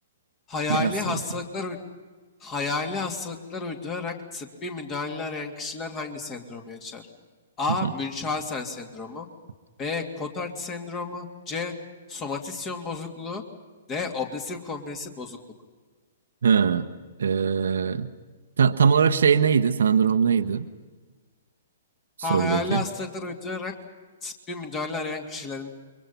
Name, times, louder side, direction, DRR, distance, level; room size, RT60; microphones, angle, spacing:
voice 1, 0.5-1.8 2.4-7.1 7.6-9.3 9.8-11.7 12.1-13.4 13.9-15.4 22.2-23.7 24.2-25.7, left 4 dB, 25° left, 4 dB, 2.8 m, -31 dB
voice 2, 16.4-16.9 17.2-18.1 18.6-20.7 22.3-22.8, right 6 dB, 65° right, 9 dB, 1.1 m, -21 dB
29.0 x 23.5 x 5.7 m, 1.4 s
figure-of-eight pair, 115°, 0 cm